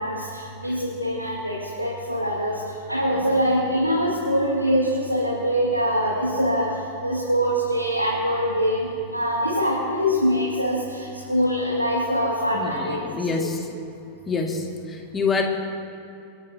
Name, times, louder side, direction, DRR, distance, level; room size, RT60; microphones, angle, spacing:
voice 1, 0.0-2.6 2.9-6.7 7.0-13.0, equal, 90° right, -5 dB, 2.1 m, -23 dB
voice 2, 12.5-13.6 14.3-15.4, left 4 dB, 20° left, 1 dB, 2.0 m, -26 dB
30.0 x 11.0 x 2.8 m, 2.7 s
figure-of-eight pair, 90°, 0 cm